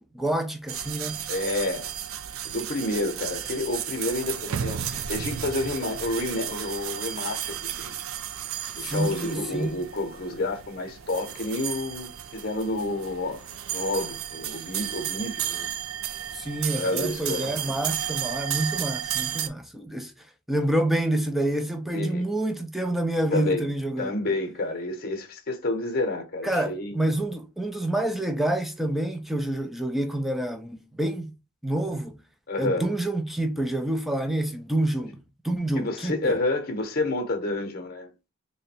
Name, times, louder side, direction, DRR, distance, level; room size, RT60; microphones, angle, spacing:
voice 1, 0.1-1.3 8.8-9.8 16.3-20.1 20.5-24.1 26.4-31.3 31.6-32.2 32.6-36.4, right 1 dB, ahead, 0.4 m, -28 dB
sound 1, 0.7-19.5, right 10 dB, 70° right, 0.4 m, -33 dB
voice 2, 1.3-1.9 2.4-8.0 8.8-15.7 16.7-17.5 21.9-22.2 23.3-23.7 24.0-27.0 32.5-32.9 35.8-38.1, left 2 dB, 45° left, 0.8 m, -29 dB
3.7 x 2.1 x 4.2 m
head